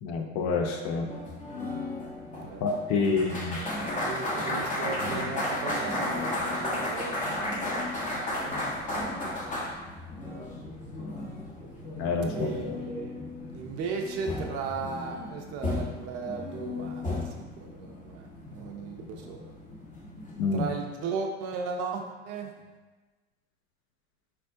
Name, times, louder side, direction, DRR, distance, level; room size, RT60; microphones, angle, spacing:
voice 1, 0.0-1.1 2.6-3.6 12.0-12.5 20.4-20.7, left 4 dB, 45° left, 3 dB, 0.5 m, -27 dB
sound 1, 1.1-20.8, left 1 dB, 20° left, 0.8 m, -34 dB
voice 2, 2.9-7.5 12.4-13.2 13.5-19.5 20.5-22.5, right 5 dB, 40° right, 3 dB, 0.4 m, -36 dB
4.4 x 2.1 x 2.5 m, 1.2 s
hypercardioid pair, 80°, 38 cm